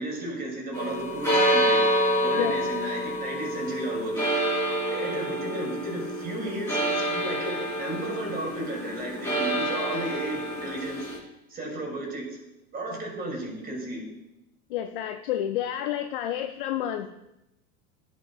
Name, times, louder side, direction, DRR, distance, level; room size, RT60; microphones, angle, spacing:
voice 1, 0.0-1.9 2.2-4.4 4.9-11.1 11.5-12.3 12.7-14.0, right 1 dB, 20° right, -1 dB, 2.6 m, -34 dB
church clock striking, 0.7-11.2, equal, 5° left, 3.1 m, -27 dB
voice 2, 14.7-17.1, left 11 dB, 40° left, 8 dB, 0.4 m, -29 dB
15.5 x 5.4 x 2.3 m, 0.90 s
figure-of-eight pair, 85°, 47 cm